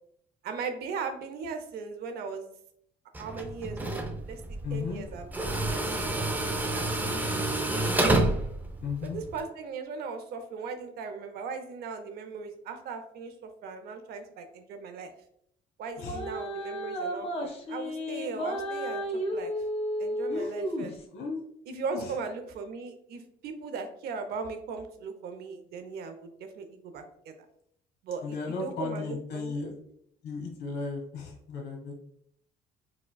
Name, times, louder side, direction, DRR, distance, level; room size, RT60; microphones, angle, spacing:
voice 1, 0.4-2.5 3.2-7.9 9.0-15.1 15.8-19.5 20.0-20.9 21.7-27.3 28.0-29.5, right 4 dB, 70° right, 7 dB, 0.6 m, -38 dB
Tools, 3.1-9.4, right 2 dB, 10° right, 0.4 m, -29 dB
voice 2, 4.6-5.0 8.8-9.2 16.0-16.2 20.3-21.4 21.9-22.2 28.2-29.7 30.2-31.9, left 4 dB, 75° left, 0 dB, 1.1 m, -35 dB
sound 1, 16.0-21.0, equal, 35° left, 0.6 m, -33 dB
4.8 x 2.2 x 2.2 m, 0.70 s
cardioid pair, 110°, 17 cm